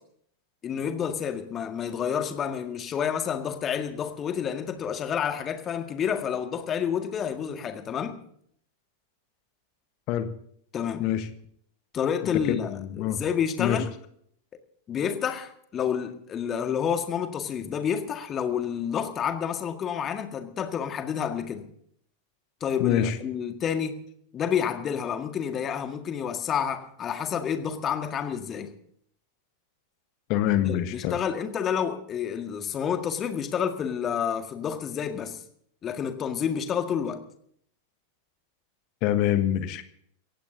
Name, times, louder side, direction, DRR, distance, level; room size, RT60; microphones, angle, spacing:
voice 1, 0.6-8.2 10.7-11.1 11.9-13.9 14.9-21.7 22.6-24.0 24.3-28.7 30.6-35.4 35.8-37.2, left 8 dB, 25° left, 1.8 m, -29 dB
voice 2, 12.2-13.2 13.6-13.8 22.8-23.2 30.3-31.2 39.0-39.8, left 11 dB, 40° left, 1.3 m, -25 dB
26.5 x 16.0 x 2.8 m
figure-of-eight pair, 90°, 0 cm